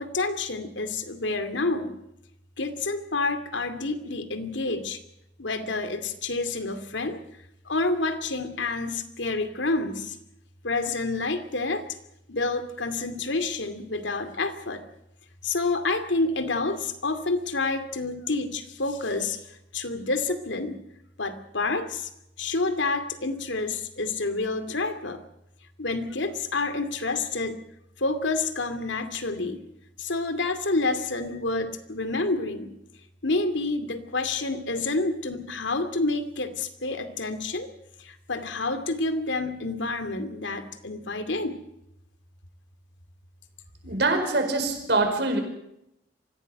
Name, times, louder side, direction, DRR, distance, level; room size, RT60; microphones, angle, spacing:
voice 1, 0.0-2.0 2.6-5.0 5.4-7.2 7.6-10.2 10.6-11.8 12.3-14.8 15.4-20.8 21.2-22.1 22.4-25.2 25.8-27.6 28.0-29.6 30.0-32.7 33.2-37.7 38.0-41.6, left 3 dB, 80° left, 9 dB, 2.5 m, -28 dB
voice 2, 43.8-45.4, right 2 dB, 65° right, 5 dB, 5.1 m, -24 dB
24.0 x 16.0 x 8.0 m, 0.83 s
head